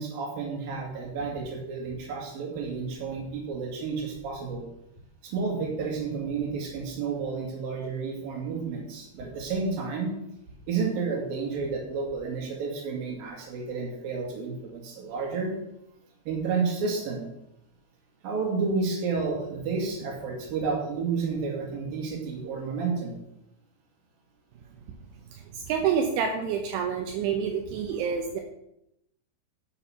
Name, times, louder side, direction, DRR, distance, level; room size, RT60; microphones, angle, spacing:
voice 1, 0.0-4.6 5.2-10.1 10.7-15.5 16.3-17.3 18.2-23.2, right 4 dB, 55° right, 0 dB, 3.7 m, -31 dB
voice 2, 25.3-28.4, right 7 dB, 80° right, 3 dB, 3.3 m, -28 dB
11.0 x 6.8 x 6.0 m, 0.82 s
omnidirectional pair, 5.6 m